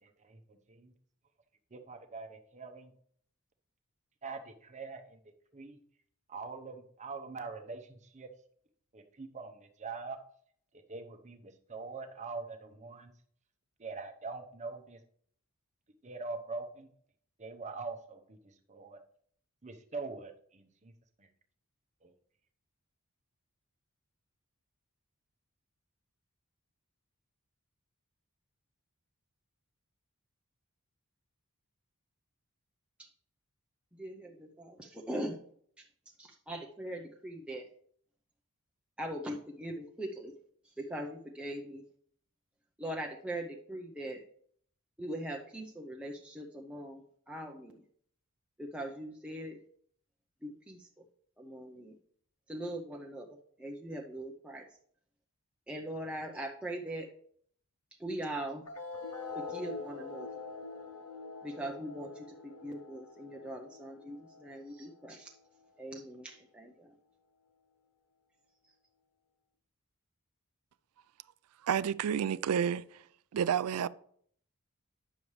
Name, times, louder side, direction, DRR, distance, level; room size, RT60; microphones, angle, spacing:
voice 1, 0.0-0.9 1.7-2.9 4.2-5.2 5.5-5.8 6.3-8.3 8.9-10.2 10.7-13.1 13.8-15.0 16.0-16.9 17.4-19.0 19.6-20.9 21.2-21.3 22.0-22.1, right 4 dB, 30° right, 0.8 m, -43 dB
voice 2, 33.9-35.4 35.8-35.9 36.2-37.7 39.0-40.3 40.6-41.8 42.8-44.2 45.0-47.8 48.6-49.6 50.4-50.9 51.4-52.0 52.5-54.7 55.7-57.1 58.0-58.6 59.3-60.3 61.4-65.3 65.8-66.9, right 1 dB, 5° right, 0.6 m, -41 dB
sound 1, 58.7-65.6, left 4 dB, 85° left, 0.9 m, -45 dB
voice 3, 71.6-72.8 73.3-73.9, right 8 dB, 75° right, 0.4 m, -29 dB
9.7 x 7.0 x 3.2 m
head